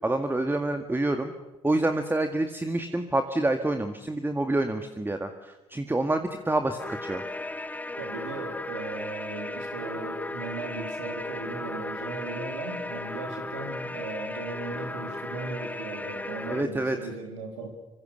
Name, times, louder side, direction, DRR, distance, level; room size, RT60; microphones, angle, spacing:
voice 1, 0.0-1.3 1.6-7.2 16.5-17.0, right 2 dB, 15° right, 7 dB, 2.0 m, -27 dB
sound 1, 6.8-16.6, left 2 dB, 10° left, 1.1 m, -36 dB
voice 2, 8.0-17.7, right 3 dB, 75° right, 3 dB, 3.7 m, -37 dB
26.0 x 25.5 x 6.8 m, 1.1 s
figure-of-eight pair, 45°, 16 cm